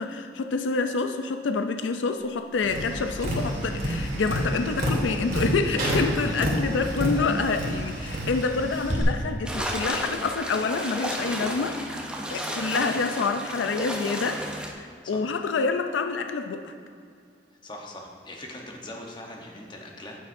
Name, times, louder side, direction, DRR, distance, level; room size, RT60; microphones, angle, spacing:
voice 1, 0.0-11.8 12.3-14.4 14.7-16.7, left 4 dB, 90° left, 7 dB, 0.4 m, -27 dB
Tap, 2.6-9.0, equal, 50° right, 1.9 m, -28 dB
voice 2, 6.3-6.6 12.2-12.6 15.0-15.2 17.6-20.2, left 1 dB, 25° left, 0 dB, 0.9 m, -41 dB
sound 1, 9.5-14.7, equal, 5° right, 0.6 m, -33 dB
9.5 x 8.5 x 2.6 m, 2.3 s
head